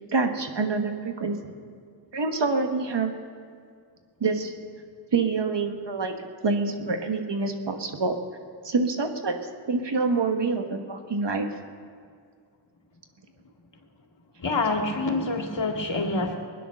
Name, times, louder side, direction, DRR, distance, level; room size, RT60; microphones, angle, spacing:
voice 1, 0.1-1.4 2.1-3.1 4.2-4.5 5.1-6.1 6.4-8.2 8.6-9.4 9.7-11.5, right 4 dB, 65° right, 5 dB, 1.5 m, -26 dB
voice 2, 14.4-16.4, left 3 dB, 70° left, 2 dB, 2.1 m, -26 dB
20.5 x 10.0 x 6.4 m, 2.1 s
wide cardioid pair, 70°, 46 cm